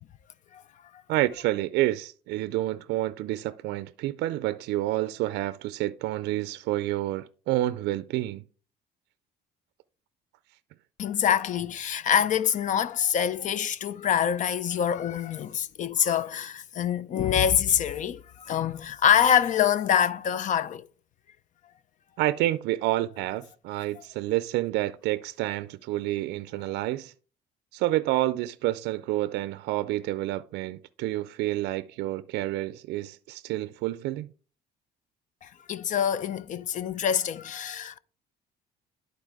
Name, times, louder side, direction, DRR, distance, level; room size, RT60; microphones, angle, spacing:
voice 1, 1.1-8.4 22.2-27.1 27.7-34.3, right 16 dB, 85° right, 0.4 m, -29 dB
voice 2, 11.0-20.9 35.4-38.0, left 9 dB, 50° left, 0.5 m, -25 dB
11.0 x 4.1 x 4.7 m
cardioid pair, 110°, 17 cm